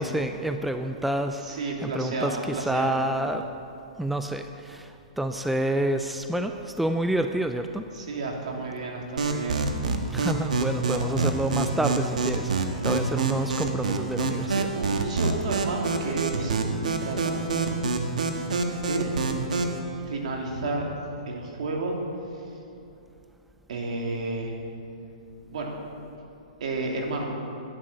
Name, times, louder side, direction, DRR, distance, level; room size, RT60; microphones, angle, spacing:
voice 1, 0.0-3.5 4.0-7.8 10.1-12.5 12.8-14.7, right 1 dB, ahead, 6 dB, 0.5 m, -28 dB
voice 2, 1.4-3.0 7.9-9.6 10.9-11.3 12.6-12.7 14.7-17.7 18.7-19.1 20.0-20.8 21.3-22.0 22.3-22.4 23.7-24.5 25.5-25.7 26.6-27.4, right 3 dB, 70° right, 0 dB, 2.9 m, -32 dB
sound 1, 9.2-19.8, right 4 dB, 90° right, 1.5 m, -27 dB
12.5 x 10.5 x 6.8 m, 2.7 s
hypercardioid pair, 140°, 4 cm